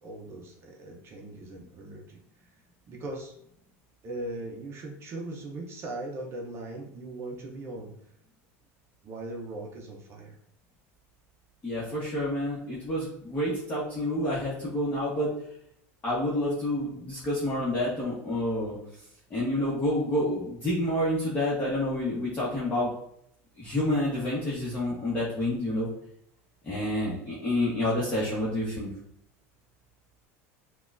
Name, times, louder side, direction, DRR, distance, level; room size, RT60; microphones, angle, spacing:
voice 1, 0.0-2.2 2.8-3.3 4.0-7.9 9.0-10.4, right 2 dB, 35° right, 0 dB, 0.6 m, -39 dB
voice 2, 11.6-15.3 16.0-18.8 19.3-22.9 23.6-25.9 26.6-28.9, left 1 dB, 20° left, -8 dB, 1.0 m, -28 dB
6.0 x 2.3 x 2.5 m, 0.73 s
supercardioid pair, 135°, 7 cm